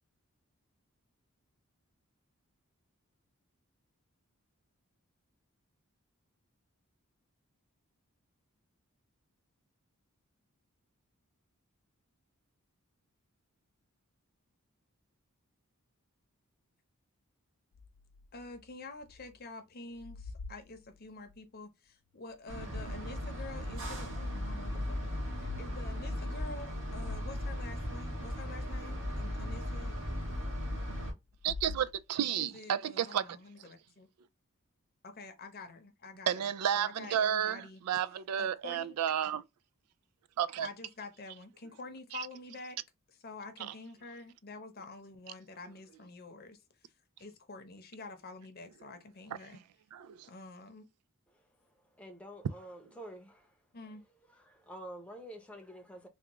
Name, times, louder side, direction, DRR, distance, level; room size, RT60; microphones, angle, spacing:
sound 1, 17.7-19.4 19.7-21.4 22.3-23.4 23.9-24.0 25.2-25.7 26.1-26.2 26.6-26.7 27.0-28.3 31.3-32.4, left 4 dB, 85° left, 0.4 m, -48 dB
voice 1, 18.3-29.9 32.4-34.1 35.0-36.5 36.7-37.8 38.4-38.9 40.6-42.8 43.1-46.6 47.2-49.6 50.3-50.9 53.7-54.0, left 3 dB, 45° left, 0.7 m, -48 dB
sound 2, 22.5-31.1, left 1 dB, 60° right, 1.6 m, -37 dB
voice 2, 31.4-33.3 36.3-39.4 40.4-40.7 42.1-42.3 49.9-50.3, right 9 dB, 90° right, 0.3 m, -32 dB
voice 3, 51.9-53.6 54.3-56.1, right 1 dB, 5° left, 0.7 m, -48 dB
3.5 x 2.3 x 2.9 m
head